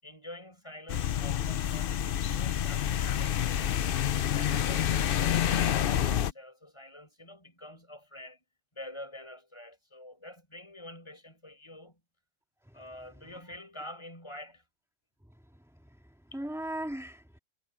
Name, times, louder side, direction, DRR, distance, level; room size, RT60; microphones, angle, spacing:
voice 1, 0.0-3.9 4.3-8.4 8.7-12.0 12.7-14.6 16.3-16.4, left 1 dB, 15° left, 8.0 m, -47 dB
sound 1, 0.9-6.3, left 10 dB, 70° left, 0.5 m, -28 dB
voice 2, 15.5-17.4, right 1 dB, ahead, 2.5 m, -39 dB
omnidirectional pair, 1.6 m